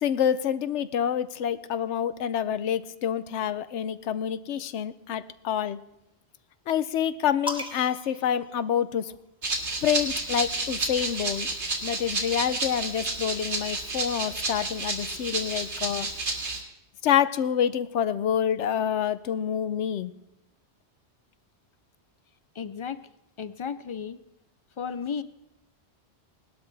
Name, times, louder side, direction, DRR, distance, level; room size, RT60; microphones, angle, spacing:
voice 1, 0.0-5.8 6.7-9.1 9.8-11.5 11.8-16.1 17.0-20.1, left 9 dB, 85° left, 14 dB, 1.0 m, -27 dB
sound 1, 7.5-9.3 10.4-12.0, left 2 dB, 5° right, 1.2 m, -40 dB
Rattle (instrument), 9.4-16.6, right 2 dB, 80° right, 2.4 m, -31 dB
voice 2, 22.5-23.0 23.4-24.2 24.8-25.2, left 6 dB, 55° left, 14 dB, 0.3 m, -33 dB
19.5 x 12.5 x 3.4 m, 0.88 s
omnidirectional pair, 1.2 m